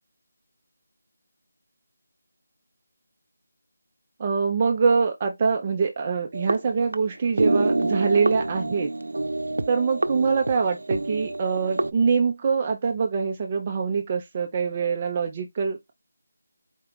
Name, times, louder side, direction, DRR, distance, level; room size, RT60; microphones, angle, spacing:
voice 1, 4.2-8.9 9.7-15.9, right 5 dB, 20° right, 0.4 m, -24 dB
sound 1, 6.3-7.1 7.4-11.9, right 2 dB, 80° right, 0.6 m, -27 dB
4.4 x 2.3 x 3.8 m
figure-of-eight pair, 175°, 0 cm